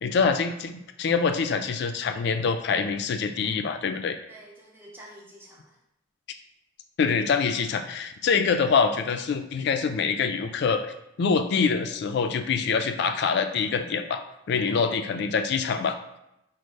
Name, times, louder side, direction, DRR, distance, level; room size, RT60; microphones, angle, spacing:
voice 1, 0.0-4.2 7.0-10.9 11.2-16.2, left 5 dB, 55° left, 8 dB, 0.3 m, -25 dB
voice 2, 4.3-5.8 14.5-14.9, right 1 dB, 10° right, -2 dB, 0.5 m, -48 dB
5.2 x 2.1 x 3.2 m, 0.85 s
head